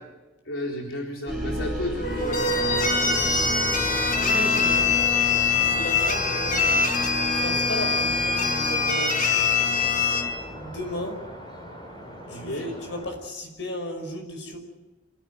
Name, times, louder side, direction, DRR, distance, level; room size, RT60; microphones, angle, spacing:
voice 1, 0.5-2.4 12.3-12.7, left 1 dB, 90° left, -1 dB, 4.1 m, -32 dB
sound 1, 1.3-11.0, equal, ahead, 6.7 m, -36 dB
sound 2, 2.0-10.2, left 4 dB, 45° left, 4.7 m, -23 dB
sound 3, 2.4-13.2, equal, 25° left, 4.6 m, -39 dB
voice 2, 3.1-3.4 4.2-4.9 5.6-9.3 10.5-11.2 12.3-14.6, left 1 dB, 65° left, 5 dB, 5.5 m, -35 dB
25.5 x 17.0 x 9.3 m, 1.1 s
head